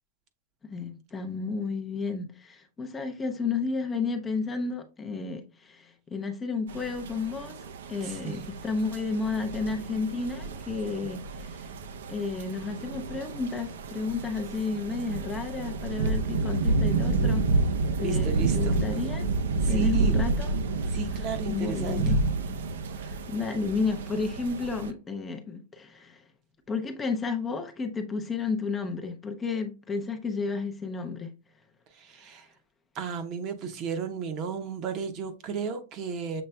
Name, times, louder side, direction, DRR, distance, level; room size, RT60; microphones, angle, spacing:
voice 1, 0.6-7.6 7.9-11.7 12.1-17.5 18.0-19.3 19.7-20.5 20.8-21.0 21.5-22.2 22.9-26.2 26.7-31.3, left 4 dB, 15° left, 0.5 m, -32 dB
sound 1, 6.7-24.9, right 3 dB, 80° right, 0.6 m, -29 dB
voice 2, 8.0-8.4 11.0-11.2 18.0-19.0 19.6-20.2 20.9-22.0 31.9-32.5 32.9-36.4, right 6 dB, 35° right, 0.7 m, -34 dB
6.8 x 3.2 x 2.2 m
supercardioid pair, 155°, 0 cm